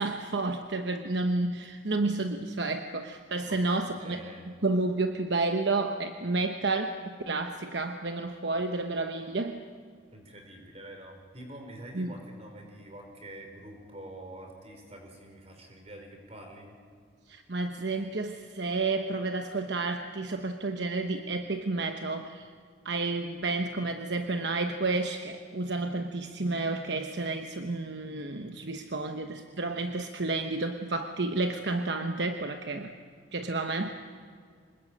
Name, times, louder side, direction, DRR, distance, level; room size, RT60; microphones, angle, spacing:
voice 1, 0.0-9.6 11.9-12.1 17.3-22.5 22.8-32.9 33.3-33.9, right 3 dB, 65° right, 6 dB, 1.0 m, -31 dB
voice 2, 4.0-4.5 10.1-16.7, right 1 dB, 35° right, 3 dB, 4.8 m, -46 dB
25.5 x 21.0 x 8.6 m, 2.1 s
head